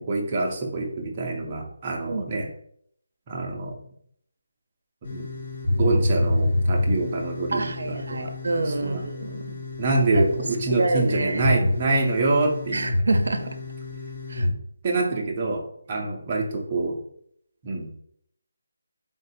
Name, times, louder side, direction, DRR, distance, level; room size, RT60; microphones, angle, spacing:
voice 1, 0.1-2.5 3.3-3.8 5.1-5.3 5.8-7.7 8.2-8.3 8.7-9.0 9.8-12.9 14.4-14.6 14.8-17.0 17.6-17.9, right 2 dB, 20° right, -1 dB, 0.5 m, -26 dB
sound 1, 5.0-14.5, left 1 dB, 35° left, 0.7 m, -28 dB
voice 2, 7.5-9.6 10.1-10.2 10.7-11.6 12.7-13.4 14.3-14.5 14.9-15.0 15.9-16.0, right 2 dB, 60° right, 9 dB, 0.5 m, -27 dB
3.6 x 2.5 x 4.1 m, 0.67 s
figure-of-eight pair, 175°, 0 cm